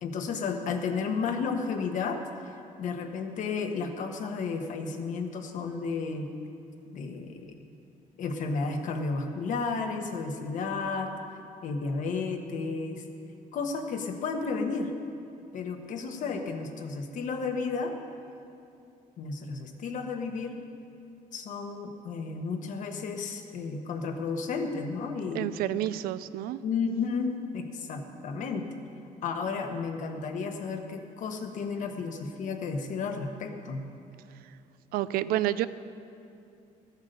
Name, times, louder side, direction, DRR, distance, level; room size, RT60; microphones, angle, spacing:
voice 1, 0.0-6.3 6.9-7.6 8.2-11.1 11.6-13.0 13.5-14.9 15.5-17.9 19.2-20.5 21.3-25.8 26.6-28.7 29.2-33.8, left 4 dB, 60° left, 5 dB, 1.3 m, -32 dB
voice 2, 25.3-26.6 34.9-35.7, right 13 dB, 90° right, 15 dB, 0.4 m, -29 dB
14.0 x 8.1 x 6.8 m, 2.7 s
cardioid pair, 140°, 15 cm